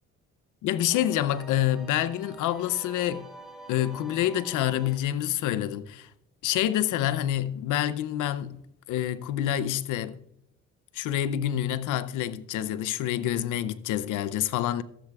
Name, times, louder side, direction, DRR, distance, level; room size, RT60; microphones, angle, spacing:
voice 1, 0.6-3.3 3.7-6.1 6.4-8.6 8.9-10.2 10.9-14.8, left 12 dB, 90° left, 0.6 m, -27 dB
sound 1, 0.9-5.2, right 2 dB, ahead, 3.4 m, -47 dB
15.0 x 13.0 x 2.4 m
cardioid pair, 90°, 30 cm